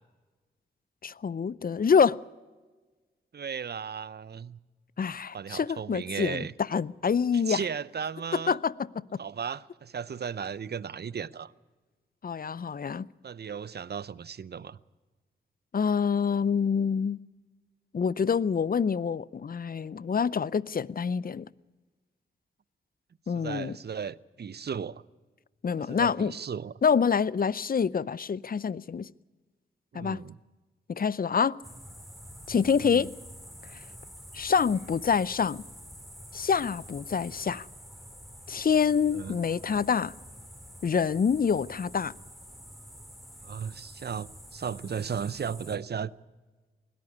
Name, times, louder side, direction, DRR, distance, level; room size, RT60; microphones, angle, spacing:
voice 1, 1.0-2.2 5.0-7.6 8.5-9.2 12.2-13.1 15.7-17.2 17.9-21.5 23.3-23.8 25.6-26.3 26.8-29.1 29.9-30.2 30.9-31.6 32.5-33.1 34.3-35.6 36.3-37.7 38.5-40.1 40.8-42.1, left 6 dB, 45° left, 0.6 m, -26 dB
voice 2, 3.3-4.6 5.3-6.5 7.3-8.6 9.2-11.5 13.2-14.8 23.3-25.0 25.8-26.7 29.9-30.4 32.8-33.1 39.1-39.4 43.4-46.1, right 7 dB, 50° right, 0.7 m, -35 dB
sound 1, 31.6-45.8, equal, ahead, 4.5 m, -47 dB
20.5 x 13.5 x 9.7 m
supercardioid pair, 40°, 21 cm